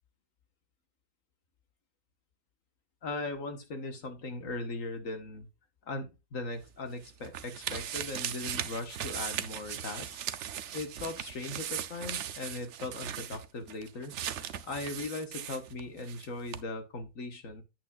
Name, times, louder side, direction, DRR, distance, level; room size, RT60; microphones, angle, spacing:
voice 1, 3.0-5.5 5.9-10.2 10.7-14.1 14.6-17.6, left 2 dB, 50° left, 7 dB, 1.7 m, -39 dB
sound 1, 6.6-16.3 16.5-16.6, right 9 dB, 60° right, 0.8 m, -38 dB
9.0 x 8.5 x 2.4 m, 0.25 s
omnidirectional pair, 1.9 m